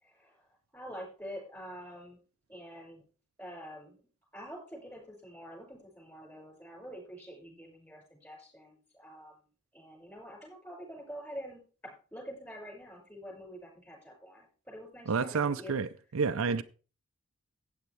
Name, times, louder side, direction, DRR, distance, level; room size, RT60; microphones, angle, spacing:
voice 1, 0.0-2.2 2.5-3.0 3.4-4.0 4.3-9.4 9.7-15.7, equal, 10° left, 5.7 m, -46 dB
voice 2, 15.1-16.6, right 5 dB, 65° right, 0.5 m, -30 dB
15.0 x 8.8 x 3.3 m
head